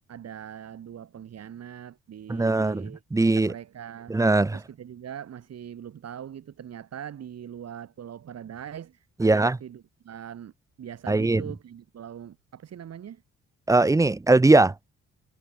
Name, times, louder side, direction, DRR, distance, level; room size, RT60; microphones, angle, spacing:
voice 1, 0.1-3.0 3.4-4.2 4.5-10.5 10.8-13.2, right 9 dB, 55° right, 2.7 m, -41 dB
voice 2, 2.3-3.5 4.1-4.6 9.2-9.6 11.1-11.4 13.7-14.7, right 2 dB, 10° right, 0.6 m, -20 dB
cardioid pair, 90°, 30 cm